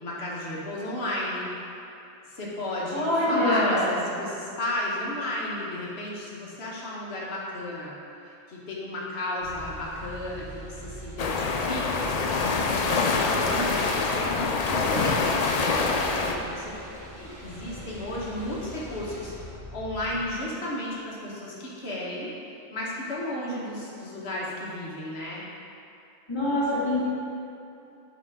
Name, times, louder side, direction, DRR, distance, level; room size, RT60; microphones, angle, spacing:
voice 1, 0.0-1.5 2.3-7.9 8.2-12.1 12.6-16.7 17.2-22.3 22.7-25.4, left 1 dB, 55° left, -5 dB, 1.5 m, -33 dB
voice 2, 2.9-4.0 26.3-27.1, left 1 dB, 20° left, -9 dB, 1.7 m, -24 dB
sound 1, 9.4-20.3, equal, 15° right, 0.8 m, -43 dB
sound 2, 11.2-16.3, left 4 dB, 90° left, 0.3 m, -25 dB
8.9 x 4.3 x 3.6 m, 2.7 s
omnidirectional pair, 1.3 m